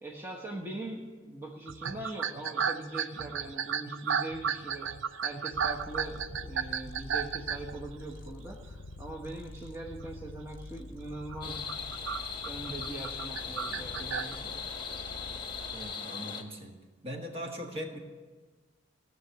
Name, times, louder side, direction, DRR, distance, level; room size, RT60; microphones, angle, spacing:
voice 1, 0.0-4.9 5.2-11.7 12.5-14.6, right 2 dB, 15° right, -2 dB, 1.2 m, -41 dB
sound 1, 1.7-8.3 8.9-9.3 9.6-10.0 10.4-10.5 11.1-14.4, right 7 dB, 75° right, 0.5 m, -34 dB
Purr, 5.5-15.9, left 2 dB, 80° left, 0.6 m, -47 dB
sound 2, 11.4-16.4, left 6 dB, 25° left, 1.2 m, -39 dB
voice 2, 15.7-16.8 17.0-18.0, equal, 30° right, 2 dB, 1.7 m, -40 dB
17.0 x 7.0 x 9.2 m, 1.4 s
head